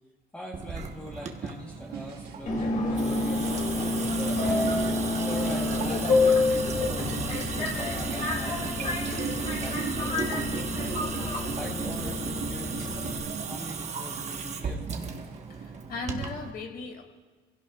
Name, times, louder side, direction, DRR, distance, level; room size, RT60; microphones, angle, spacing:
voice 1, 0.3-3.5 4.1-11.0 11.6-15.1, left 1 dB, 5° left, -2 dB, 1.2 m, -42 dB
Water tap faucet / Sink (filling or washing) / Drip, 0.5-16.5, right 5 dB, 40° right, 1.2 m, -36 dB
sound 1, 1.9-15.3 15.6-16.2, right 6 dB, 70° right, 1.7 m, -40 dB
Subway metro underground, 2.5-13.2, left 3 dB, 45° left, 2.1 m, -28 dB
voice 2, 15.5-17.0, left 3 dB, 60° left, 2 dB, 2.4 m, -38 dB
23.0 x 16.5 x 2.4 m, 1.3 s
cardioid pair, 110°, 17 cm